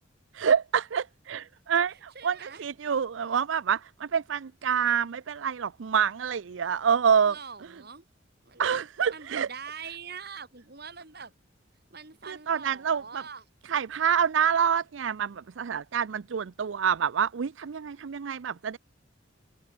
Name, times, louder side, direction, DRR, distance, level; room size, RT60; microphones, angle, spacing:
voice 1, 0.3-7.4 8.6-9.5 12.3-13.2 13.6-18.8, right 7 dB, 75° right, 0.5 m, -27 dB
voice 2, 1.9-2.6 7.2-8.0 8.4-8.8 9.1-11.3 11.9-13.5, right 6 dB, 55° right, 2.9 m, -44 dB
head